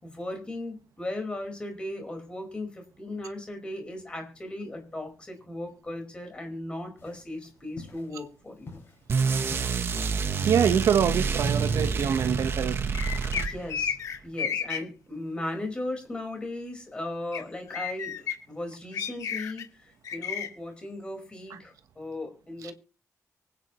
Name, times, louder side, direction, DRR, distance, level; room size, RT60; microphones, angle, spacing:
voice 1, 0.0-8.8 13.3-13.9 14.2-22.7, left 1 dB, 20° left, 4.8 m, -37 dB
sound 1, 7.0-12.0, left 3 dB, 40° left, 7.6 m, -48 dB
sound 2, 9.1-13.9, right 5 dB, 45° right, 1.1 m, -27 dB
voice 2, 10.4-12.8 21.5-21.6 22.6-22.7, right 8 dB, 75° right, 1.2 m, -25 dB
sound 3, 12.9-14.8 17.3-17.4 17.7-18.3 18.9-19.6 20.0-20.5, left 8 dB, 80° left, 2.2 m, -31 dB
24.5 x 9.6 x 3.1 m
wide cardioid pair, 180°, 6 cm